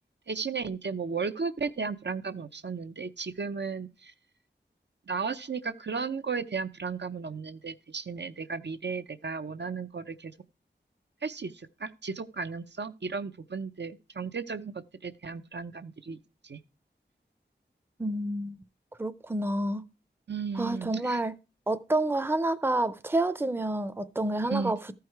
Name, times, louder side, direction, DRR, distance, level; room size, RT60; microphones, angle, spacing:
voice 1, 0.3-4.1 5.1-10.3 11.2-16.2 16.4-16.6 20.3-21.2 24.5-24.7, right 5 dB, 70° right, 0.6 m, -35 dB
voice 2, 18.0-18.6 19.0-19.9 20.6-21.4 21.7-24.9, right 2 dB, 10° right, 0.5 m, -29 dB
13.5 x 4.7 x 4.6 m
wide cardioid pair, 60°, 19 cm